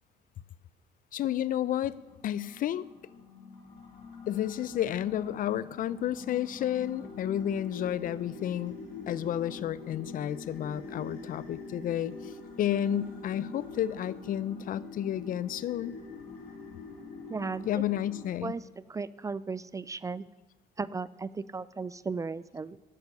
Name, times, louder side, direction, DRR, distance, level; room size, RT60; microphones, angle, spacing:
voice 1, 1.1-2.0 2.2-2.9 4.3-8.8 9.1-15.9 17.7-18.6, left 11 dB, 55° left, 19 dB, 0.5 m, -31 dB
sound 1, 1.5-18.3, left 4 dB, 75° left, 4.9 m, -44 dB
voice 2, 17.3-17.7 18.4-18.6 18.9-20.2 20.8-22.8, right 4 dB, 20° right, 18 dB, 0.3 m, -35 dB
12.0 x 9.6 x 6.6 m, 1.1 s
cardioid pair, 110°, 17 cm